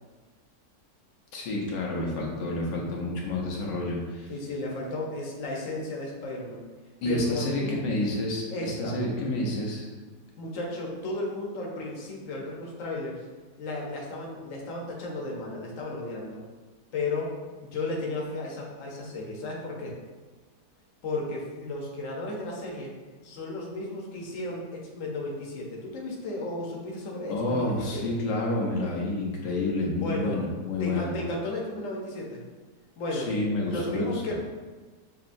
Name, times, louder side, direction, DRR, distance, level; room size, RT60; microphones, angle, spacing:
voice 1, 1.3-4.3 7.0-9.9 27.3-31.2 33.1-34.3, left 2 dB, 90° left, -2 dB, 1.5 m, -29 dB
voice 2, 2.8-3.1 4.3-6.7 7.0-7.8 8.5-9.0 10.4-13.2 13.6-16.4 16.9-17.3 17.6-20.0 21.0-22.9 23.2-28.2 30.0-30.4 30.8-32.4 33.0-33.3 33.6-34.3, left 2 dB, 55° left, -2 dB, 1.1 m, -34 dB
6.5 x 2.8 x 2.5 m, 1.3 s
omnidirectional pair, 1.9 m